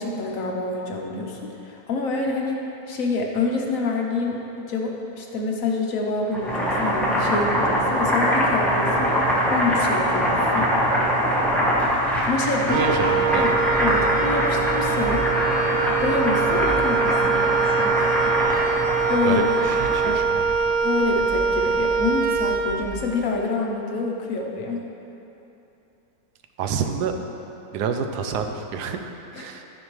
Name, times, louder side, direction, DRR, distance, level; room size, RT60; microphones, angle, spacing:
voice 1, 0.0-9.2 9.5-10.7 12.2-12.9 13.3-13.5 13.8-15.3 16.0-18.1 19.1-19.5 20.0-20.2 20.8-24.8 29.3-29.4, left 3 dB, 60° left, 0 dB, 1.1 m, -27 dB
Boiling, 6.3-20.1, equal, ahead, 1.0 m, -23 dB
Wind instrument woodwind instrument, 12.7-23.1, right 5 dB, 65° right, 0.5 m, -23 dB
voice 2, 12.7-13.5 13.9-14.1 19.2-19.4 19.9-20.8 26.6-27.1 27.7-29.6, right 6 dB, 80° right, 5 dB, 1.2 m, -28 dB
13.0 x 5.3 x 3.1 m, 2.9 s
omnidirectional pair, 1.7 m